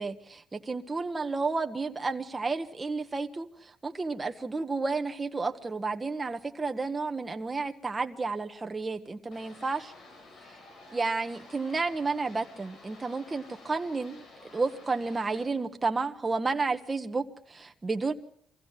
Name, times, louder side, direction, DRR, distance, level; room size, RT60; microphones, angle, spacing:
voice 1, 0.0-9.9 10.9-14.2 14.5-18.1, right 3 dB, 25° right, 5 dB, 1.3 m, -31 dB
sound 1, 9.3-15.5, left 2 dB, 65° left, 7.5 m, -52 dB
24.0 x 16.0 x 7.4 m, 0.65 s
cardioid pair, 90°, 0 cm